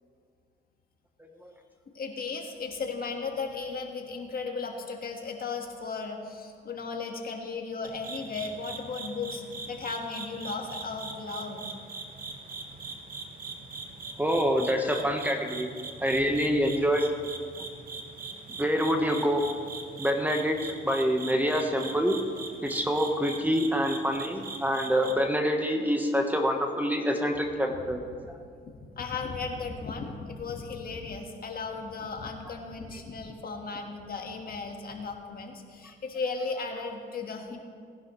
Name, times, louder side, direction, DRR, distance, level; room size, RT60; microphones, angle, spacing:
voice 1, 1.2-1.5 14.2-15.7 16.0-17.1 18.5-19.4 20.0-22.2 22.6-28.0 28.3-28.4, equal, 10° right, 3 dB, 1.2 m, -26 dB
voice 2, 1.9-11.7 16.0-16.4 27.7-28.3 28.6-37.6, left 4 dB, 50° left, 3 dB, 1.6 m, -36 dB
sound 1, 7.8-25.1, right 4 dB, 45° right, 1.4 m, -41 dB
18.5 x 11.0 x 3.2 m, 2.2 s
cardioid pair, 90°, 20 cm